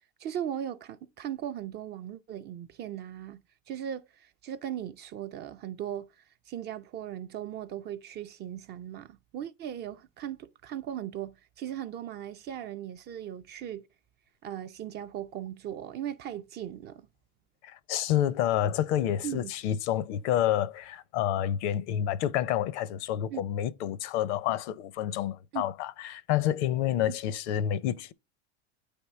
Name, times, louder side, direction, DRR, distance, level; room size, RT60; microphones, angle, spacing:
voice 1, 0.2-3.4 3.7-6.1 6.5-13.9 14.4-17.1 19.2-19.5 23.3-23.4 25.5-25.6, right 10 dB, 30° right, 0.4 m, -38 dB
voice 2, 17.6-28.1, left 11 dB, 70° left, 0.6 m, -29 dB
9.0 x 3.6 x 4.2 m
supercardioid pair, 115°, 35 cm